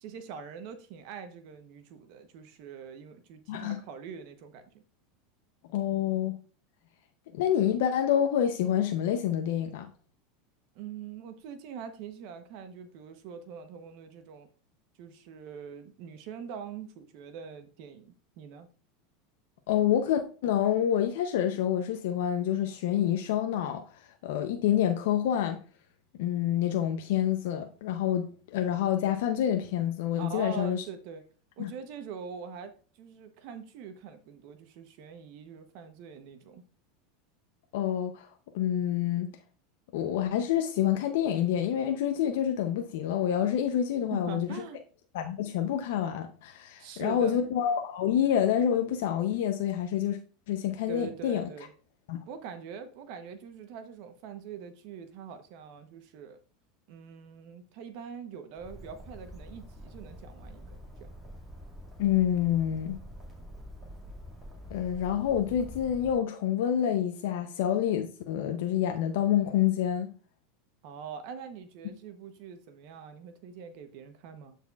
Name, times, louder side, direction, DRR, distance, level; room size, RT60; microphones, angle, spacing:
voice 1, 0.0-4.7 10.7-14.5 15.0-18.7 30.2-31.2 31.6-32.7 33.0-36.6 44.1-44.8 46.8-47.4 50.9-51.7 52.3-56.4 56.9-61.1 70.8-74.6, right 7 dB, 60° right, 0.9 m, -43 dB
voice 2, 5.7-6.4 7.3-9.9 19.7-25.6 26.2-30.8 31.6-31.7 37.7-38.3 38.5-39.3 39.9-44.5 45.1-50.2 50.5-51.5 52.1-52.2 62.0-63.0 64.7-70.1, left 10 dB, 75° left, 0.6 m, -27 dB
Bird, 58.6-66.2, equal, 15° right, 2.1 m, -46 dB
12.5 x 4.2 x 2.4 m
supercardioid pair, 135°, 0 cm